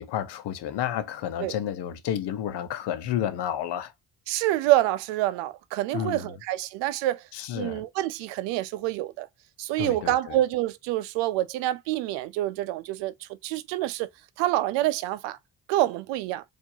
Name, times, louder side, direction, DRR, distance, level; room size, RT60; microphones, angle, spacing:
voice 1, 0.0-3.9 5.9-6.4 7.3-7.9 9.8-10.4, left 10 dB, 70° left, 0.9 m, -31 dB
voice 2, 4.3-7.2 7.5-9.3 9.6-13.1 13.4-14.1 14.4-15.4 15.7-16.4, right 15 dB, 85° right, 0.6 m, -27 dB
4.5 x 2.7 x 2.7 m
supercardioid pair, 60°, 42 cm